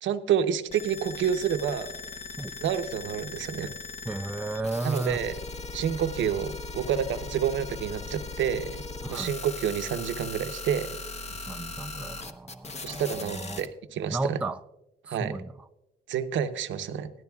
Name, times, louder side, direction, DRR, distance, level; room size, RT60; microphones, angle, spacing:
voice 1, 0.0-1.9 2.6-3.7 4.8-5.4 5.7-8.8 9.1-10.9 12.8-14.4 15.1-15.4 16.1-17.1, right 8 dB, 70° right, 0.8 m, -29 dB
sound 1, 0.7-13.7, left 4 dB, 35° left, 0.9 m, -39 dB
voice 2, 4.1-5.2 9.0-9.3 11.4-13.7 14.1-14.6 15.1-15.5, right 2 dB, 5° right, 0.3 m, -33 dB
17.0 x 12.0 x 2.3 m
cardioid pair, 90°, 20 cm